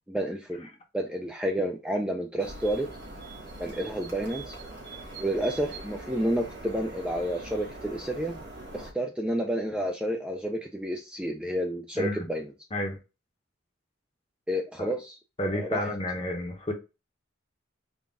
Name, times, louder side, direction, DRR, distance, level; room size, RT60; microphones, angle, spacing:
voice 1, 0.1-0.7 0.9-2.9 3.6-4.6 5.2-8.4 8.7-12.5 14.5-15.9, right 1 dB, 5° right, 0.3 m, -30 dB
sound 1, 2.4-8.9, right 2 dB, 50° right, 1.4 m, -42 dB
voice 2, 15.4-16.7, left 1 dB, 25° left, 0.8 m, -31 dB
3.8 x 2.4 x 3.5 m
head